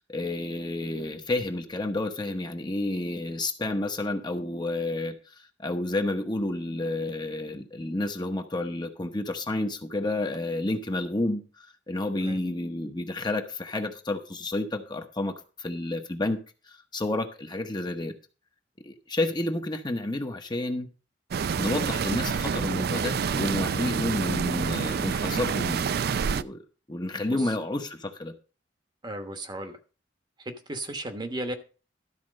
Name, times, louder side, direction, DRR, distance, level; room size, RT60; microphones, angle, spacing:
voice 1, 0.0-16.4 16.7-18.1 18.8-20.9 21.6-25.8 26.2-26.6 26.9-28.3, left 2 dB, 25° left, 5 dB, 0.9 m, -30 dB
sound 1, 21.3-26.4, right 6 dB, 60° right, 0.4 m, -28 dB
voice 2, 29.0-29.8 30.4-31.6, right 1 dB, 25° right, 7 dB, 1.1 m, -35 dB
12.5 x 4.3 x 6.3 m, 0.36 s
head